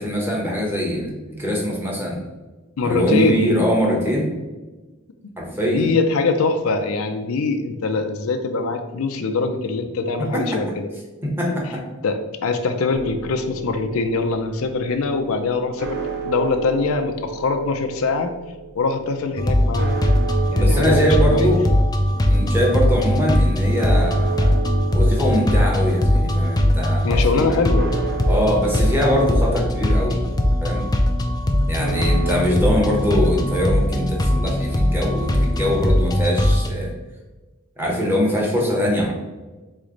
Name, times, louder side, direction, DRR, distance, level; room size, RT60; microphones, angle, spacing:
voice 1, 0.0-2.2 2.8-4.3 5.4-5.9 10.2-10.4 11.2-11.8 20.5-21.6 22.3-24.5 24.9-27.6 28.3-30.2 30.6-30.8 31.6-36.9 37.8-39.1, equal, 10° right, -3 dB, 1.1 m, -22 dB
voice 2, 2.8-3.5 5.7-10.9 11.5-11.6 12.0-18.3 18.7-20.1 20.5-21.5 27.0-27.9, left 4 dB, 85° left, 6 dB, 0.5 m, -23 dB
sound 1, 12.9-32.4, right 6 dB, 55° right, 0.7 m, -34 dB
sound 2, 19.4-36.7, left 1 dB, 20° left, 0.4 m, -20 dB
3.8 x 3.2 x 3.8 m, 1.2 s
head